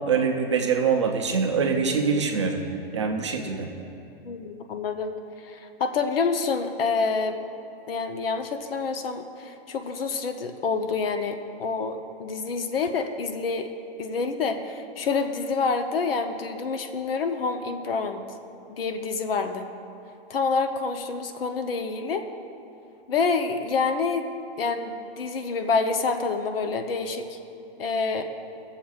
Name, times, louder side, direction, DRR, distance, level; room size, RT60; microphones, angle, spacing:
voice 1, 0.0-2.6 2.9-3.7, right 5 dB, 30° right, 2 dB, 0.5 m, -24 dB
voice 2, 4.2-7.4 7.9-13.7 14.0-18.2 18.7-19.7 20.3-22.2 23.1-24.3 24.6-27.4 27.8-28.3, left 4 dB, 65° left, 7 dB, 0.7 m, -27 dB
20.0 x 7.2 x 2.4 m, 2.8 s
hypercardioid pair, 175°, 31 cm